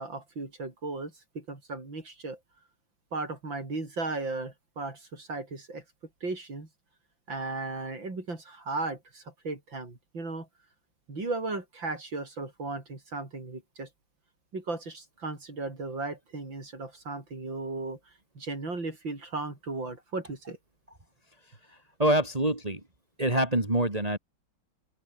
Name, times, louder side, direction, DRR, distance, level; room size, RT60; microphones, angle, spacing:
voice 1, 0.0-2.4 3.1-5.8 6.2-6.7 7.3-10.5 11.1-13.9 14.5-18.0 18.4-20.6, right 3 dB, 65° right, 6.4 m, -36 dB
voice 2, 22.0-22.8 23.2-24.2, right 1 dB, 15° right, 3.5 m, -25 dB
open air
omnidirectional pair, 2.2 m